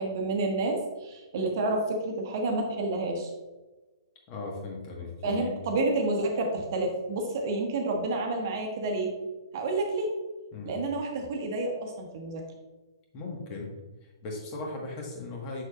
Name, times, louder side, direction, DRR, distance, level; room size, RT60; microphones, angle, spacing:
voice 1, 0.0-3.3 5.2-9.1 9.5-10.1 10.6-12.4, right 2 dB, 45° right, 2 dB, 1.1 m, -29 dB
voice 2, 4.3-5.5 10.5-10.7 13.1-13.7 14.2-15.6, left 3 dB, 30° left, 0 dB, 1.5 m, -37 dB
6.4 x 6.4 x 2.5 m, 1.2 s
figure-of-eight pair, 125°, 2 cm